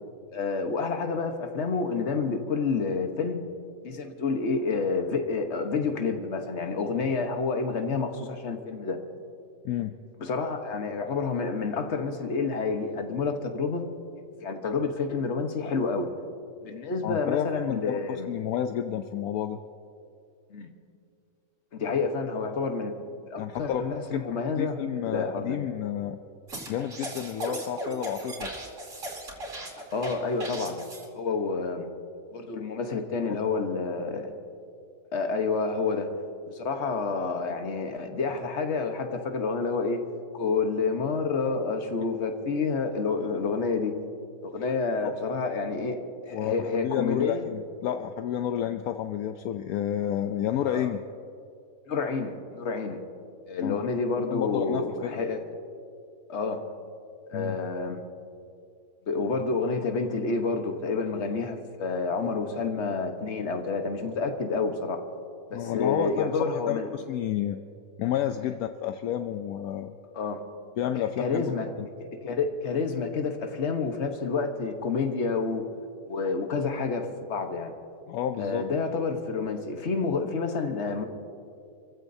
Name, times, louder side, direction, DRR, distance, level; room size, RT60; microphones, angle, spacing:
voice 1, 0.3-3.4 3.8-9.0 10.2-13.9 14.4-16.1 16.6-18.3 20.5-20.7 21.7-22.9 23.3-25.6 29.7-30.8 31.1-31.9 32.3-34.3 35.1-36.1 36.5-40.0 40.3-44.0 44.4-47.5 50.7-50.9 51.9-53.0 53.5-55.4 56.3-56.6 57.3-58.0 59.1-65.0 65.5-66.9 70.1-70.4 71.2-71.7 72.0-75.6 76.1-77.7 78.4-81.1, left 4 dB, 50° left, 5 dB, 1.4 m, -29 dB
voice 2, 17.0-19.6 23.4-23.8 24.6-26.2 26.7-28.5 45.0-45.1 46.3-46.5 46.8-51.0 53.6-53.7 54.2-55.1 57.3-57.6 65.5-67.6 68.0-70.0 70.8-71.4 71.8-71.9 78.1-78.6, left 10 dB, 75° left, 7 dB, 1.0 m, -30 dB
sound 1, 26.5-31.1, right 1 dB, 50° right, 3.1 m, -37 dB
29.5 x 15.5 x 2.7 m, 2.5 s
omnidirectional pair, 1.6 m